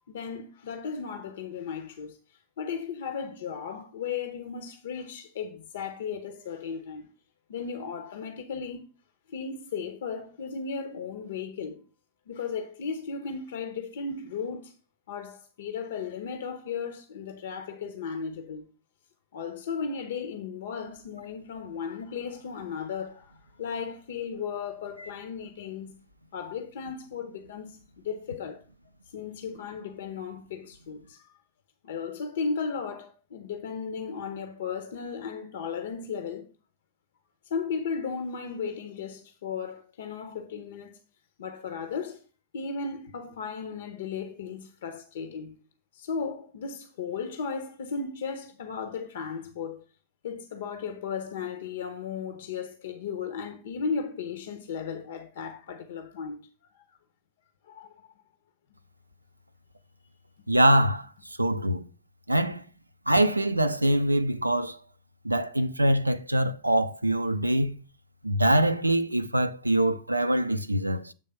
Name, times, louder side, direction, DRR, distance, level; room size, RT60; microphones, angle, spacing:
voice 1, 0.1-2.2 2.6-7.1 7.5-8.9 9.3-11.8 12.3-14.7 15.1-18.7 19.3-25.9 26.3-28.6 29.1-31.3 31.8-36.5 37.5-41.0 41.4-42.2 42.5-45.6 45.9-49.8 50.2-56.5 56.7-56.8 57.7-58.0, left 6 dB, 60° left, 0.7 m, -35 dB
voice 2, 60.5-61.9 62.3-62.6 63.1-64.8 65.2-67.8 68.2-71.1, right 1 dB, 85° right, 0.3 m, -24 dB
7.6 x 3.4 x 5.5 m
figure-of-eight pair, 90°, 0 cm